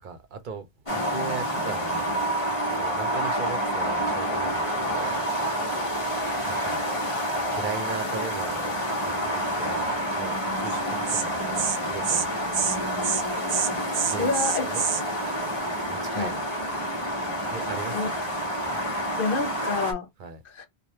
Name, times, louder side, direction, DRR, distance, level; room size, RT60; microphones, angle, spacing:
voice 1, 0.0-2.2 2.5-5.2 6.4-6.8 7.5-12.6 14.1-14.3 14.7-14.8 15.9-16.8 17.5-18.1 20.2-20.4, right 5 dB, 55° right, 0.9 m, -38 dB
sound 1, 0.9-19.9, equal, 30° left, 1.0 m, -28 dB
Insect, 10.7-10.8 11.1-11.2 11.5-11.8 12.0-12.2 12.5-12.8 13.0-13.2 13.5-15.0, right 8 dB, 85° right, 0.9 m, -26 dB
voice 2, 14.2-14.7 16.1-16.3 17.9-18.1 19.2-20.1 20.4-20.7, left 4 dB, 60° left, 0.9 m, -28 dB
3.2 x 2.4 x 2.7 m
omnidirectional pair, 1.1 m